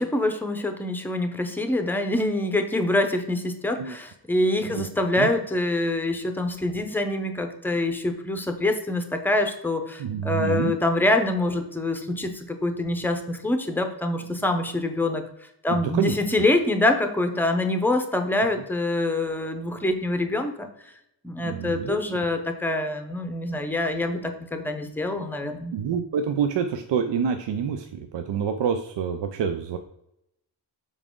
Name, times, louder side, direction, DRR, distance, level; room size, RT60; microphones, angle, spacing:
voice 1, 0.0-15.2 15.6-20.7 21.2-25.7, left 2 dB, 5° left, 6 dB, 0.6 m, -25 dB
voice 2, 10.0-10.7 15.7-16.4 21.4-22.2 25.7-29.8, right 7 dB, 80° right, 6 dB, 0.6 m, -27 dB
7.2 x 4.8 x 3.7 m, 0.79 s
wide cardioid pair, 175°, 42 cm